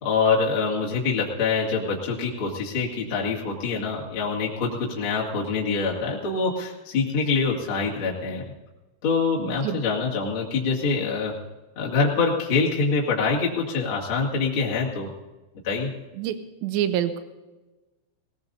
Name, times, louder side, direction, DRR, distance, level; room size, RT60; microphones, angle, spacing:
voice 1, 0.0-8.5 9.0-11.3 11.8-15.1 15.6-15.9, left 4 dB, 40° left, -4 dB, 2.0 m, -25 dB
voice 2, 9.4-9.8 16.1-16.4 16.6-17.2, right 11 dB, 85° right, 10 dB, 2.4 m, -26 dB
20.0 x 19.5 x 2.7 m, 1.1 s
omnidirectional pair, 5.8 m